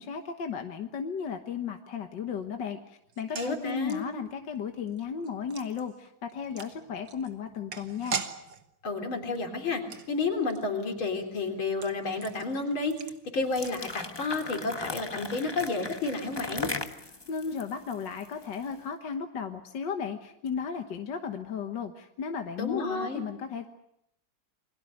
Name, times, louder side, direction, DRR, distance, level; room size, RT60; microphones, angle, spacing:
voice 1, 0.0-8.2 17.3-23.7, left 6 dB, 60° left, 5 dB, 1.9 m, -35 dB
sound 1, 3.1-14.3 14.6-14.7 15.0-15.1, right 6 dB, 65° right, 2.1 m, -43 dB
voice 2, 3.3-4.1 8.8-9.8 10.1-13.0 13.3-16.7 22.6-23.2, left 3 dB, 80° left, 3 dB, 4.4 m, -31 dB
sound 2, 13.4-18.7, left 3 dB, 15° left, 1.0 m, -38 dB
29.0 x 22.0 x 6.6 m, 0.76 s
omnidirectional pair, 2.2 m